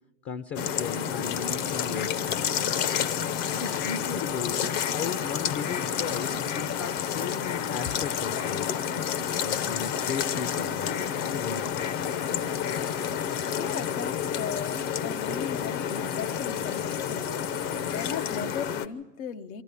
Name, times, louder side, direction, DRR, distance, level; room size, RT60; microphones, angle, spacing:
voice 1, 0.2-2.5 3.5-4.6 4.9-8.7 9.4-11.9, left 6 dB, 30° left, 13 dB, 0.5 m, -36 dB
sound 1, 0.6-18.9, left 8 dB, 60° left, 1.1 m, -29 dB
voice 2, 13.5-17.3 17.6-19.6, left 6 dB, 85° left, 7 dB, 1.2 m, -37 dB
23.5 x 14.0 x 8.3 m, 1.2 s
supercardioid pair, 125°, 40 cm